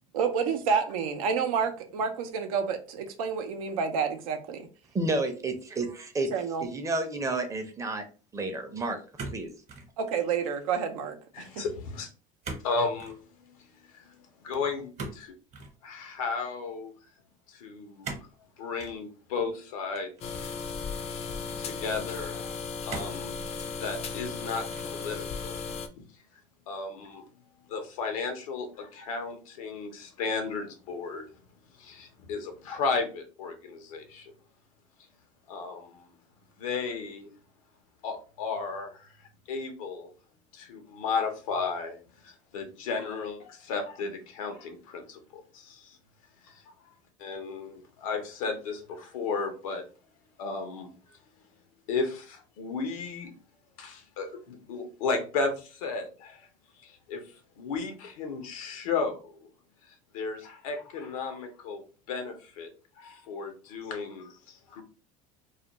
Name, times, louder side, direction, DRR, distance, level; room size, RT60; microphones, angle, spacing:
voice 1, 0.1-4.7 6.3-6.7 10.0-11.6, right 6 dB, 90° right, 0.5 m, -29 dB
voice 2, 4.9-6.3 6.6-8.0 8.3-9.0 9.3-9.5, right 2 dB, 20° right, 0.5 m, -30 dB
sound 1, 9.2-9.9 10.3-10.7 12.4-12.7 13.0-13.2 15.0-15.7 18.0-18.3 18.8-19.0 19.9-20.7 21.4-21.5 22.9-23.3 23.9-24.3 24.7-25.1, right 3 dB, 40° right, 0.9 m, -40 dB
voice 3, 11.3-12.1 12.6-13.2 13.5-13.6 13.9-15.3 15.8-16.9 17.5-18.2 18.6-20.5 21.6-23.4 23.8-25.6 26.0-26.1 26.7-27.2 27.7-31.2 31.8-34.3 35.5-36.1 36.6-37.3 38.0-39.1 39.5-40.1 40.5-42.0 42.2-46.0 46.4-46.5 47.2-49.8 50.4-50.9 51.9-53.3 53.8-56.5 56.8-57.2 57.6-59.5 60.1-61.8 62.1-62.7 63.0-64.8, left 4 dB, 90° left, 0.7 m, -34 dB
sound 2, 20.2-25.9, left 5 dB, 35° left, 0.4 m, -36 dB
2.4 x 2.2 x 2.8 m
supercardioid pair, 100°, 17 cm